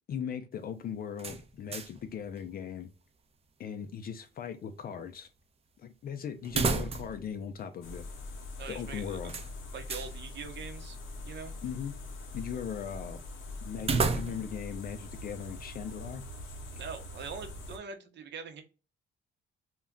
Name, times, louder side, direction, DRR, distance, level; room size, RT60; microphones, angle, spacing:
voice 1, 0.1-2.9 3.6-5.3 5.8-8.0 8.7-9.3 11.6-12.0 12.3-13.2 13.6-16.2, left 7 dB, 50° left, 0.4 m, -39 dB
sound 1, 1.2-2.1 2.4-2.5 6.4-7.3 7.6-7.7 9.3-10.1 13.8-14.6, right 4 dB, 30° right, 0.5 m, -31 dB
sound 2, 7.8-17.8, left 2 dB, 85° left, 0.7 m, -43 dB
voice 2, 8.6-9.2 9.7-11.0 11.3-11.5 16.7-18.6, right 5 dB, 60° right, 0.7 m, -43 dB
2.3 x 2.1 x 3.5 m
cardioid pair, 90°, 20 cm